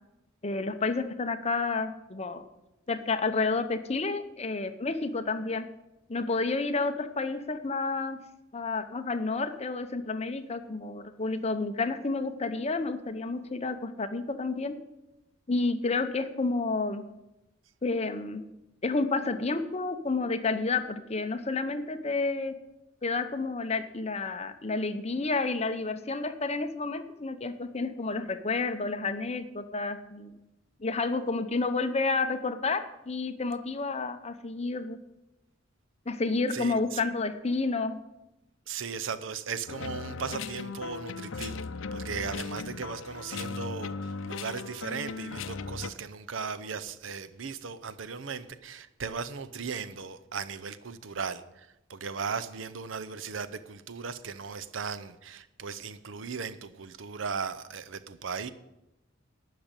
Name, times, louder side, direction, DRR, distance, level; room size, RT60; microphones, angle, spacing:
voice 1, 0.4-2.4 2.9-5.7 6.1-8.2 8.5-14.8 15.5-17.0 17.8-18.4 18.8-22.5 23.0-30.3 30.8-35.0 36.1-38.0, left 3 dB, 35° left, 9 dB, 0.8 m, -30 dB
voice 2, 36.5-37.0 38.7-58.5, right 5 dB, 75° right, 13 dB, 0.7 m, -37 dB
sound 1, 39.7-45.9, left 4 dB, 80° left, 0.6 m, -37 dB
12.0 x 6.0 x 9.0 m, 0.95 s
head